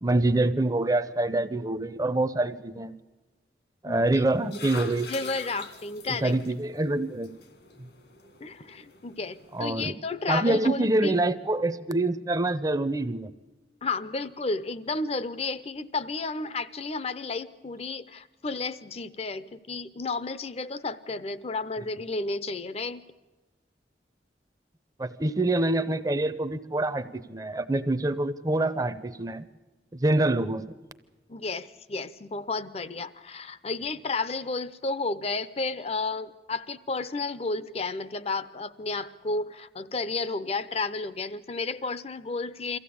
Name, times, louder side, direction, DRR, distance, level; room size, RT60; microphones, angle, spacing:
voice 1, 0.0-2.9 3.8-5.1 6.1-7.3 7.8-7.9 9.5-9.9 10.3-13.3 25.0-29.5 29.9-30.6, right 2 dB, 20° right, 13 dB, 0.6 m, -26 dB
voice 2, 3.9-4.2 5.1-6.3 8.4-11.2 13.8-23.0 31.3-42.8, left 3 dB, 35° left, 14 dB, 0.6 m, -32 dB
sound 1, 4.1-9.7, left 2 dB, 75° left, 2.0 m, -44 dB
23.5 x 15.0 x 8.6 m, 1.2 s
head